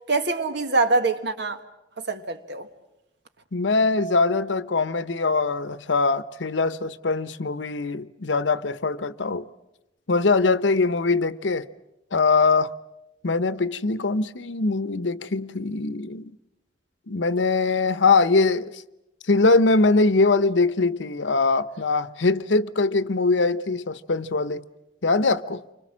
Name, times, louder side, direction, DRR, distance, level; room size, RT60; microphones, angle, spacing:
voice 1, 0.1-1.6 2.0-2.7, right 3 dB, 70° right, 1.7 m, -24 dB
voice 2, 3.5-9.5 10.1-11.7 12.1-12.7 13.2-16.3 17.1-18.8 19.3-24.6 25.0-25.6, left 3 dB, 85° left, 0.9 m, -22 dB
29.0 x 25.0 x 7.4 m
head